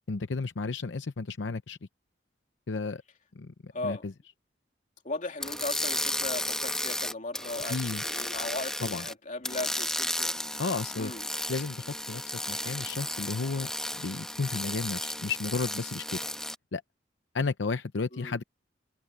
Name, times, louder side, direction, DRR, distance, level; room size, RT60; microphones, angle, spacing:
voice 1, 0.1-1.8 2.7-3.0 3.4-4.1 7.7-8.0 8.8-9.0 10.6-11.1 11.5-12.2 12.5-13.7 14.0-16.2 16.7-16.8 17.3-18.4, left 4 dB, 80° left, 0.7 m, -33 dB
voice 2, 3.7-4.0 5.0-10.3 10.9-11.3 18.1-18.4, left 2 dB, 45° left, 3.1 m, -37 dB
sound 1, 5.4-9.1 9.4-16.5, left 1 dB, 5° left, 1.4 m, -34 dB
head